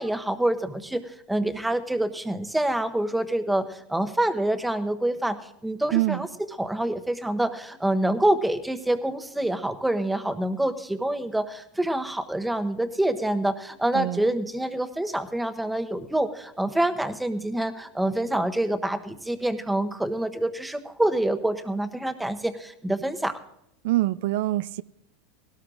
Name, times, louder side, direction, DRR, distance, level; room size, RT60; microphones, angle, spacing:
voice 1, 0.0-5.4 5.6-6.3 6.6-23.4, right 1 dB, 5° right, 8 dB, 0.8 m, -26 dB
voice 2, 5.9-6.2 13.9-14.3 23.8-24.8, right 16 dB, 70° right, 16 dB, 0.4 m, -25 dB
19.5 x 17.5 x 2.4 m, 0.80 s
supercardioid pair, 145°, 0 cm